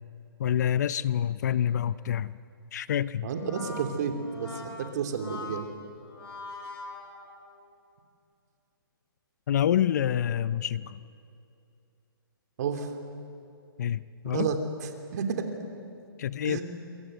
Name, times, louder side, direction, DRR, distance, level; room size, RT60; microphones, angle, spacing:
voice 1, 0.4-2.3 2.7-3.3 9.5-11.0 13.8-14.0 14.2-14.5 16.2-16.6, left 10 dB, 45° left, 17 dB, 0.6 m, -27 dB
Brass instrument, 3.2-7.7, left 3 dB, 80° left, 7.6 m, -43 dB
voice 2, 3.2-5.7 12.6-12.9 14.2-15.5 16.4-16.6, right 6 dB, 45° right, 5 dB, 3.1 m, -31 dB
28.5 x 23.5 x 8.1 m, 2.5 s
hypercardioid pair, 150°, 13 cm